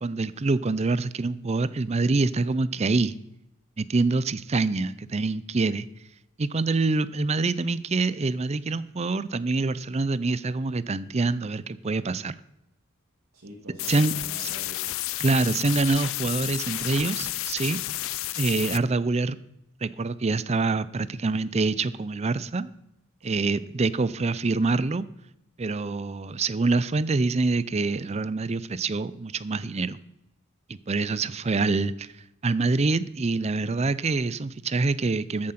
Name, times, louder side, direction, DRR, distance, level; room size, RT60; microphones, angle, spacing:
voice 1, 0.0-3.1 3.8-5.9 6.4-12.3 13.9-14.1 15.2-17.8 18.4-19.4 19.8-22.7 23.2-25.1 25.6-30.0 30.9-32.1 32.4-35.5, right 3 dB, 30° right, 16 dB, 0.5 m, -25 dB
voice 2, 13.3-15.0 23.2-23.7 24.2-24.4 31.1-31.3, equal, 80° right, -1 dB, 2.3 m, -46 dB
sound 1, 13.8-18.8, left 16 dB, 70° left, 0.4 m, -31 dB
14.0 x 7.7 x 5.8 m, 0.87 s
head